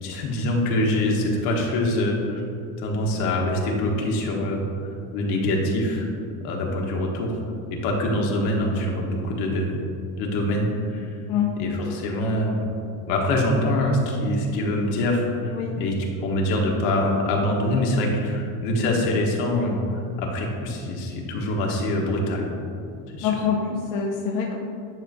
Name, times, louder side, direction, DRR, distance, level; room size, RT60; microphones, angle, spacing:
voice 1, 0.0-2.4 2.8-6.1 6.4-7.4 7.7-9.8 10.2-11.1 11.6-12.6 13.1-15.9 16.2-19.8 20.2-22.5 23.1-23.3, left 1 dB, 75° left, -1 dB, 1.3 m, -24 dB
voice 2, 23.2-24.6, left 7 dB, 55° left, -1 dB, 0.7 m, -25 dB
9.9 x 4.6 x 2.6 m, 2.5 s
cardioid pair, 140°, 39 cm